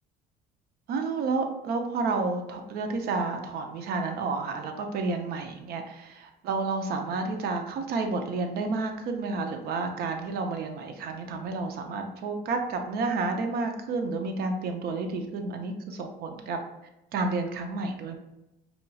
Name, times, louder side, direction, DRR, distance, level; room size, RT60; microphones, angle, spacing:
voice 1, 0.9-16.6 17.1-18.2, right 3 dB, 60° right, 5 dB, 0.6 m, -30 dB
4.2 x 2.7 x 2.3 m, 0.95 s
supercardioid pair, 95°, 18 cm